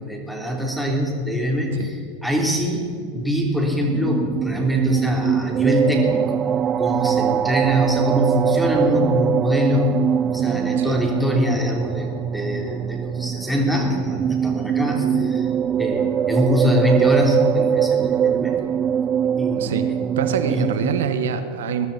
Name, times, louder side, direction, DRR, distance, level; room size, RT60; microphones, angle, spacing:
voice 1, 0.1-2.9 3.1-6.4 6.8-10.0 10.3-12.1 12.3-15.5 15.8-18.6 19.4-19.8 20.5-20.7, equal, ahead, 0 dB, 3.4 m, -23 dB
sound 1, 3.7-21.1, right 9 dB, 30° right, 0.3 m, -22 dB
voice 2, 19.6-19.9 20.2-21.9, right 7 dB, 85° right, 9 dB, 1.2 m, -25 dB
21.0 x 13.0 x 4.1 m, 2.5 s
supercardioid pair, 120°, 0 cm